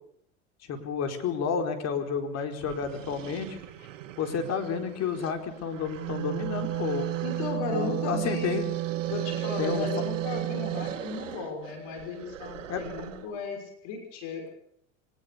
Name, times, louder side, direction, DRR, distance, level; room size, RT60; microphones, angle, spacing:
voice 1, 0.6-3.6 4.2-7.1 7.7-8.6 9.6-9.9 12.7-12.8, left 6 dB, 45° left, 5 dB, 4.6 m, -31 dB
sound 1, 2.2-2.3 2.6-13.4, right 11 dB, 80° right, 2.0 m, -41 dB
Wind instrument woodwind instrument, 5.8-11.0, right 17 dB, 60° right, 2.4 m, -32 dB
voice 2, 7.2-8.6 9.1-14.5, left 4 dB, 60° left, 4 dB, 6.2 m, -35 dB
23.5 x 19.5 x 7.0 m, 0.69 s
hypercardioid pair, 95°, 37 cm